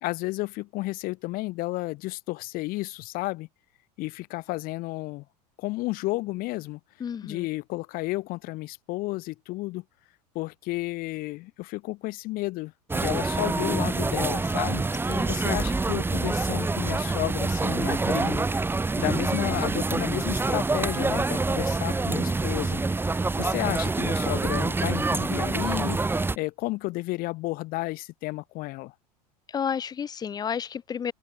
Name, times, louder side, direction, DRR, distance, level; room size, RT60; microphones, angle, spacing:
voice 1, 0.0-3.5 4.0-5.2 5.6-6.8 7.2-9.8 10.3-18.4 19.0-22.8 23.4-26.0 26.4-28.9, left 20 dB, 45° left, 2.2 m, -32 dB
voice 2, 7.0-7.5 15.1-15.3 29.5-31.1, left 7 dB, 20° left, 0.6 m, -31 dB
sound 1, 12.9-26.4, right 3 dB, 10° right, 2.1 m, -26 dB
open air
figure-of-eight pair, 80°, 20 cm